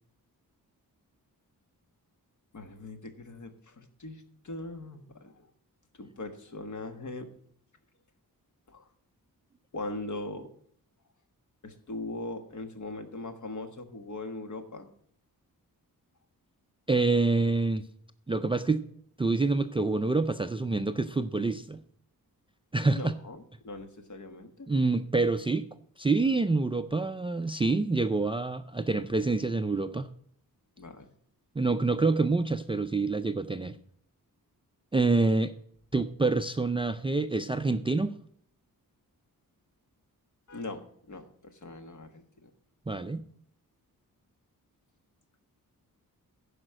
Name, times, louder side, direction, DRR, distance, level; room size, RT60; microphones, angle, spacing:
voice 1, 2.5-5.5 5.9-7.3 8.7-8.9 9.7-10.5 11.6-14.9 22.9-24.7 30.8-31.1 35.2-35.3 40.5-42.5, left 2 dB, 55° left, 7 dB, 1.4 m, -40 dB
voice 2, 16.9-17.8 18.3-18.8 19.2-21.8 22.7-23.1 24.7-25.7 26.0-30.1 31.6-33.8 34.9-35.5 35.9-38.1 42.9-43.2, right 3 dB, 15° right, 11 dB, 0.4 m, -27 dB
10.5 x 5.1 x 7.6 m, 0.63 s
wide cardioid pair, 125°, 35 cm